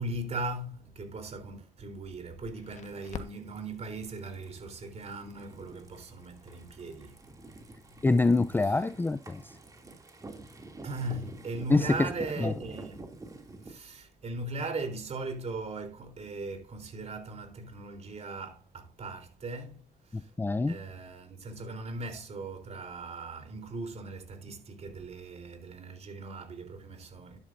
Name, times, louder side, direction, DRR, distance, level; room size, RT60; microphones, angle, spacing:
voice 1, 0.0-7.3 7.5-8.1 8.6-8.7 10.8-13.2 13.6-20.3 20.7-27.4, right 2 dB, 40° right, 3.8 m, -39 dB
Crackle, 2.3-8.9, left 7 dB, 45° left, 1.4 m, -51 dB
sound 1, 2.9-13.7, right 2 dB, 20° right, 2.8 m, -48 dB
voice 2, 8.0-9.5 11.7-11.9 12.4-12.5 20.1-20.8, left 3 dB, 10° left, 0.5 m, -25 dB
12.5 x 10.5 x 2.7 m
cardioid pair, 110°, 17 cm